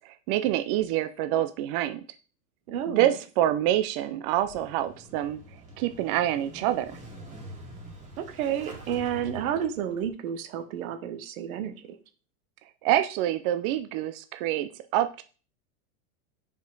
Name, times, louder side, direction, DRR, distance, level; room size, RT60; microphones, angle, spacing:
voice 1, 0.3-2.0 2.9-5.4 5.8-7.0 12.8-15.2, right 12 dB, 40° right, 9 dB, 0.4 m, -26 dB
voice 2, 2.7-3.1 8.2-12.0, right 9 dB, 75° right, 9 dB, 1.1 m, -31 dB
Motorcycle / Engine starting, 4.2-10.1, right 1 dB, 15° right, 1.9 m, -46 dB
5.2 x 5.0 x 3.9 m, 0.37 s
supercardioid pair, 135°, 43 cm